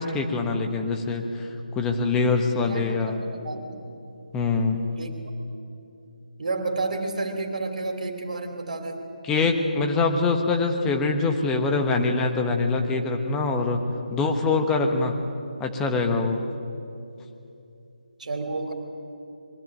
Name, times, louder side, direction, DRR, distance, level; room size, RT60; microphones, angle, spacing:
voice 1, 0.0-1.5 1.7-3.2 4.3-5.0 9.2-13.8 14.1-15.1 15.6-16.4, left 3 dB, 10° left, 4 dB, 1.2 m, -24 dB
voice 2, 2.5-3.8 5.0-5.1 6.4-9.0 18.2-18.7, right 3 dB, 60° right, 5 dB, 3.0 m, -31 dB
22.5 x 13.5 x 9.1 m, 2.7 s
figure-of-eight pair, 160°, 5 cm